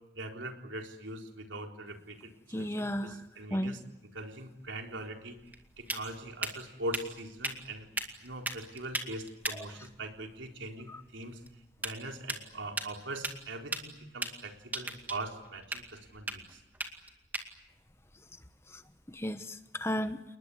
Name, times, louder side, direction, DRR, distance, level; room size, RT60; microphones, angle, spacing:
voice 1, 0.1-3.8 4.1-5.4 5.8-7.9 8.2-11.4 11.8-16.6, right 1 dB, 85° right, 3 dB, 4.0 m, -42 dB
voice 2, 2.5-3.2 3.5-3.8 9.5-9.6 10.9-11.0 18.7-18.8 19.1-20.2, equal, 15° left, 10 dB, 1.1 m, -34 dB
sound 1, 4.6-19.3, right 2 dB, 10° right, 2.2 m, -41 dB
29.5 x 20.5 x 9.5 m, 0.91 s
head